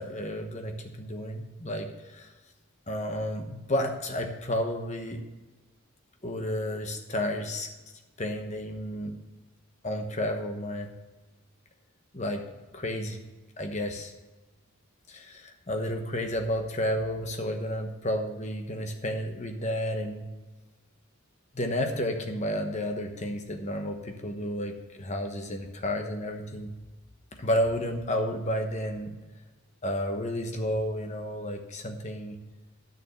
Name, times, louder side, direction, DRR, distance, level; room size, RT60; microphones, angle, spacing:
voice 1, 0.0-2.3 2.9-5.2 6.2-7.7 8.2-9.2 9.8-10.9 12.1-12.4 12.7-13.2 13.6-14.1 15.1-20.3 21.5-26.7 27.4-29.2 29.8-32.4, left 1 dB, 30° left, 5 dB, 1.1 m, -31 dB
9.9 x 6.8 x 5.7 m, 1.2 s
head